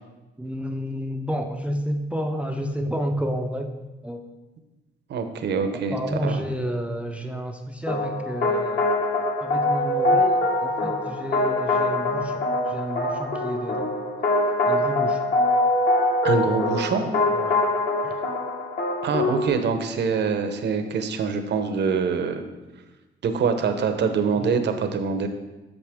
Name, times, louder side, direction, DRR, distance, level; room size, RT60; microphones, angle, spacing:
voice 1, 0.4-3.7 4.0-4.2 5.7-8.9 9.4-13.9 14.7-15.2 17.3-17.6 18.0-18.2 24.4-24.5, equal, 5° right, 4 dB, 0.5 m, -30 dB
voice 2, 5.1-6.4 16.2-17.1 19.0-22.4 23.2-25.3, right 5 dB, 60° right, 8 dB, 0.8 m, -25 dB
sound 1, 7.9-19.5, left 2 dB, 50° left, 1.4 m, -23 dB
7.8 x 6.6 x 3.6 m, 1.1 s
cardioid pair, 90°, 20 cm